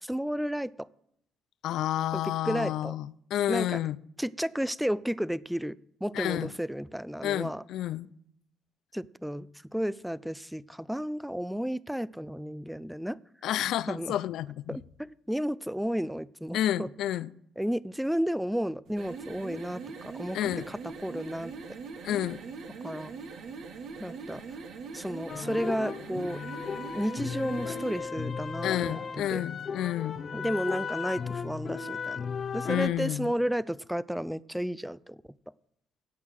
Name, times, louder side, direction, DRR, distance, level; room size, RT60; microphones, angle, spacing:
voice 1, 0.0-0.9 2.1-2.9 3.5-3.8 4.2-5.8 6.0-7.6 8.9-13.2 13.9-14.2 14.7-16.9 17.6-20.4 20.7-21.5 22.8-23.1 24.0-24.4 24.9-26.4 26.9-29.0 29.3-29.4 30.3-32.2 32.5-35.2, equal, 5° right, 0.5 m, -32 dB
voice 2, 1.6-4.0 6.1-6.5 7.2-8.1 13.4-14.8 16.5-17.3 20.3-20.7 22.0-22.4 28.6-30.2 32.7-33.3, left 12 dB, 70° left, 0.4 m, -30 dB
sound 1, 18.9-28.1, right 5 dB, 65° right, 1.7 m, -42 dB
sound 2, 25.3-32.9, left 6 dB, 45° left, 0.8 m, -36 dB
16.5 x 5.7 x 6.3 m
hypercardioid pair, 55°, 0 cm